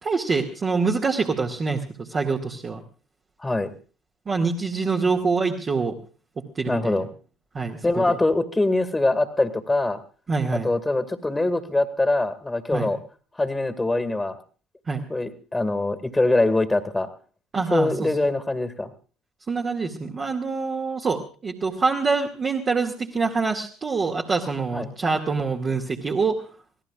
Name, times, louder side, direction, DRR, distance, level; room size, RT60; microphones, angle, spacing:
voice 1, 0.0-2.8 4.3-6.0 6.4-7.0 7.5-8.2 10.3-10.7 12.7-12.9 14.9-15.0 17.5-18.1 19.5-26.4, right 4 dB, 35° right, 0 dB, 2.2 m, -25 dB
voice 2, 3.4-3.7 6.7-7.1 7.8-10.0 10.5-13.0 13.4-14.4 15.1-17.1 17.7-18.9 24.7-24.9, left 2 dB, 15° left, 10 dB, 2.2 m, -23 dB
25.5 x 17.5 x 2.5 m, 0.38 s
hypercardioid pair, 60°, 0 cm